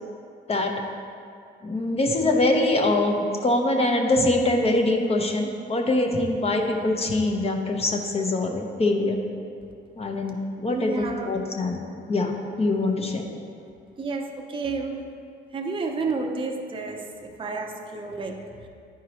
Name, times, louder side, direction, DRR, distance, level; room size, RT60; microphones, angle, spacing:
voice 1, 1.6-9.2 10.0-11.8 12.1-13.3, left 2 dB, 30° left, 2 dB, 0.8 m, -23 dB
voice 2, 10.7-11.4 14.0-15.1 15.5-18.7, right 3 dB, 25° right, 1 dB, 0.7 m, -31 dB
10.0 x 4.7 x 2.9 m, 2.3 s
cardioid pair, 90°, 20 cm